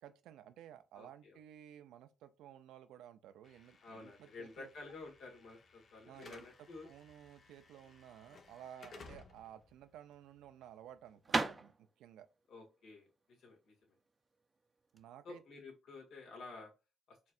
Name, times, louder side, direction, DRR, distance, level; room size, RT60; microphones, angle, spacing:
voice 1, 0.0-4.7 6.0-11.7 12.0-12.3 14.9-15.4, right 10 dB, 85° right, 0.4 m, -55 dB
voice 2, 0.9-1.4 3.8-6.9 8.8-8.9 12.5-13.1 13.4-13.7 15.2-16.7 17.1-17.2, left 3 dB, 75° left, 1.9 m, -51 dB
Slam / Alarm, 3.4-11.5, left 4 dB, 55° left, 0.8 m, -60 dB
sound 1, 9.4-15.1, right 3 dB, 25° right, 0.5 m, -40 dB
4.5 x 3.2 x 2.5 m
cardioid pair, 90°, 0 cm